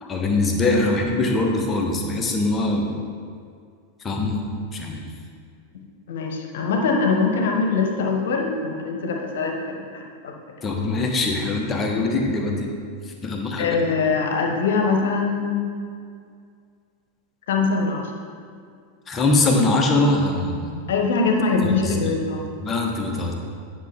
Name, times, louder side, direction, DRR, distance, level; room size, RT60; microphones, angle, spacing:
voice 1, 0.0-2.9 4.0-5.1 10.6-12.7 13.0-13.8 19.1-20.8 21.8-22.2 22.6-23.3, left 2 dB, 20° left, 1 dB, 1.1 m, -22 dB
voice 2, 6.1-10.4 13.6-15.7 17.5-18.1 20.9-22.5, left 4 dB, 60° left, 3 dB, 1.1 m, -23 dB
9.7 x 6.0 x 3.6 m, 2.2 s
figure-of-eight pair, 90°, 0 cm